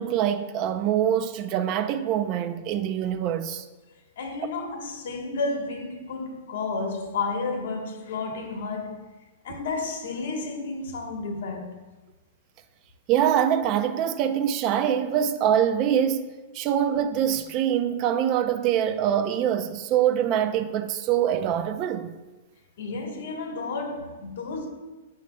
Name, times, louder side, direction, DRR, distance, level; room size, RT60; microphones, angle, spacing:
voice 1, 0.0-3.7 13.1-22.2, right 9 dB, 30° right, 0.4 m, -24 dB
voice 2, 4.2-9.1 9.4-11.8 22.8-24.7, left 3 dB, 65° left, 1.2 m, -31 dB
9.4 x 6.3 x 2.2 m
hypercardioid pair, 165°, 0 cm